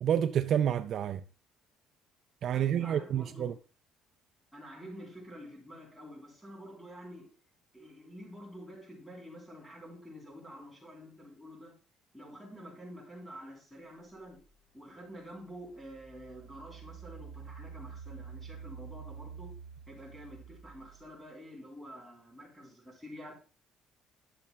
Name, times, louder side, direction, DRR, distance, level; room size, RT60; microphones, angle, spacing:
voice 1, 0.0-1.2 2.4-3.5, right 9 dB, 45° right, 0.3 m, -29 dB
voice 2, 2.5-3.6 4.5-7.3 7.7-11.8 12.1-14.4 14.7-19.6 19.9-23.3, equal, ahead, 3.4 m, -48 dB
Engine, 14.5-14.6 15.2-21.2, right 6 dB, 70° right, 0.8 m, -48 dB
11.0 x 6.8 x 2.3 m
cardioid pair, 150°, 0 cm